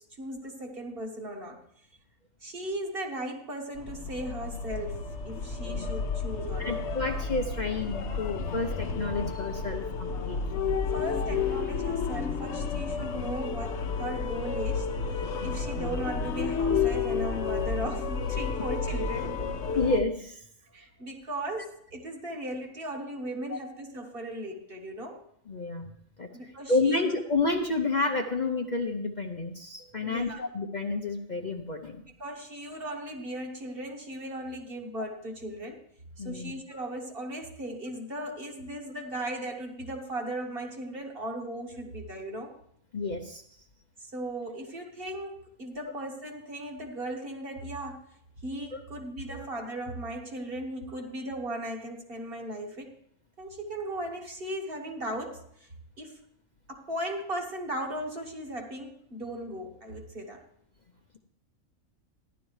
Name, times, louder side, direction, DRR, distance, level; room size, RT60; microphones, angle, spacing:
voice 1, 0.0-1.6 2.4-6.8 10.9-14.9 15.1-19.5 20.7-25.2 26.3-27.0 29.8-30.4 32.2-35.8 36.2-42.5 44.1-48.1 48.4-52.9 53.4-55.7 56.0-56.2 56.7-60.4, right 1 dB, 45° right, 1 dB, 1.6 m, -37 dB
sound 1, 3.8-20.0, left 5 dB, 65° left, 1.0 m, -31 dB
voice 2, 6.6-10.4 13.0-13.1 15.4-15.7 19.7-20.4 23.5-23.6 25.5-25.9 26.2-26.3 26.7-32.0 36.2-36.8 42.9-43.4 48.7-48.8 49.3-49.5, left 3 dB, 45° left, 2 dB, 0.7 m, -30 dB
14.5 x 11.0 x 3.2 m, 0.70 s
omnidirectional pair, 1.3 m